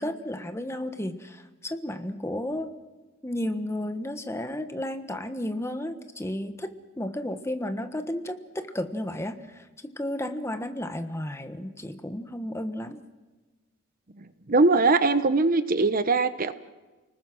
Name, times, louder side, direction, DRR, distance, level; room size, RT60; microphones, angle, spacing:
voice 1, 0.0-2.7 3.2-6.7 7.0-13.0, left 1 dB, 15° left, 8 dB, 1.3 m, -33 dB
voice 2, 14.5-16.5, right 3 dB, 40° right, 12 dB, 0.8 m, -21 dB
29.5 x 19.5 x 6.3 m, 1.2 s
head